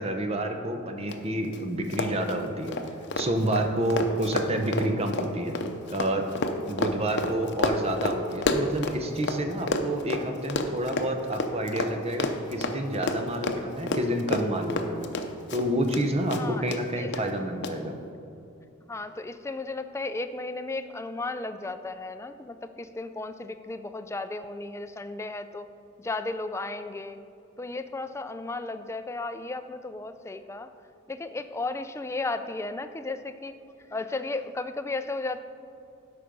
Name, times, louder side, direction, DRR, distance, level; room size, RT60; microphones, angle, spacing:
voice 1, 0.0-2.8 3.2-5.6 5.9-15.1 15.5-17.9, right 1 dB, 30° right, 5 dB, 0.8 m, -29 dB
Run, 1.1-1.2 1.4-1.6 1.9-9.4 9.7-16.0 16.3-16.8 17.1-17.2 17.6-17.7, left 2 dB, 55° left, 0.7 m, -29 dB
voice 2, 16.4-17.2 18.9-25.7 26.0-27.2 27.6-30.7 31.1-33.5 33.9-35.4, left 2 dB, 15° left, 9 dB, 0.3 m, -34 dB
12.5 x 5.1 x 5.3 m, 2.6 s
head